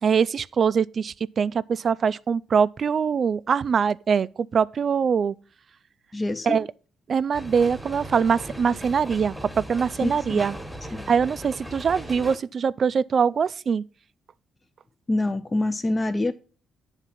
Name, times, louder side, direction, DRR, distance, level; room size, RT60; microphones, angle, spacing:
voice 1, 0.0-5.3 6.5-6.7 7.1-10.6 11.1-13.8, right 6 dB, 50° right, 0.3 m, -23 dB
voice 2, 6.1-6.6 10.0-10.4 10.9-11.1 15.1-16.3, left 2 dB, 25° left, 0.5 m, -26 dB
sound 1, 7.3-12.4, equal, 5° left, 1.2 m, -38 dB
9.9 x 3.6 x 5.9 m
cardioid pair, 90°, 0 cm